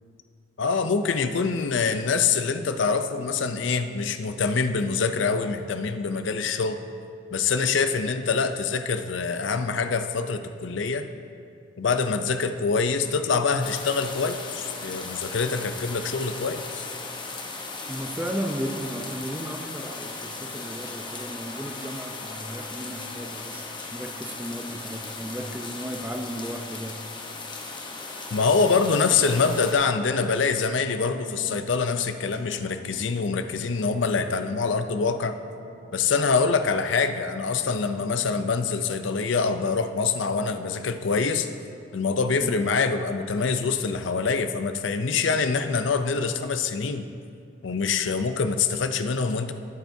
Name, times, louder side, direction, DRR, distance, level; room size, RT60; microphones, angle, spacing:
voice 1, 0.6-6.8 7.3-11.1 11.8-16.9 28.3-35.4 35.9-41.5 41.9-47.1 47.6-49.5, left 5 dB, 70° left, 8 dB, 0.5 m, -25 dB
sound 1, 13.6-29.7, left 3 dB, 25° left, 1.0 m, -37 dB
voice 2, 17.9-27.0 42.4-42.6, equal, 10° right, 4 dB, 0.6 m, -35 dB
sound 2, 29.2-38.3, right 1 dB, 75° right, 1.2 m, -49 dB
19.0 x 8.8 x 2.7 m, 2.4 s
head